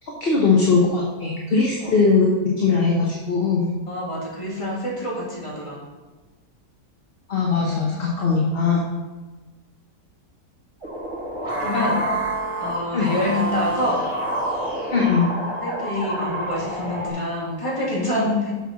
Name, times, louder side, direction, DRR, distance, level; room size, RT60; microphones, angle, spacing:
voice 1, 0.0-3.7 7.3-8.9 12.9-13.1 14.9-15.3, left 4 dB, 35° left, -2 dB, 1.3 m, -20 dB
voice 2, 3.9-5.8 11.6-12.1 12.6-14.0 15.6-18.5, left 1 dB, 15° left, -6 dB, 2.9 m, -26 dB
sound 1, 10.8-17.1, right 1 dB, 40° right, 3.3 m, -27 dB
7.2 x 6.9 x 6.1 m, 1.2 s
omnidirectional pair, 1.8 m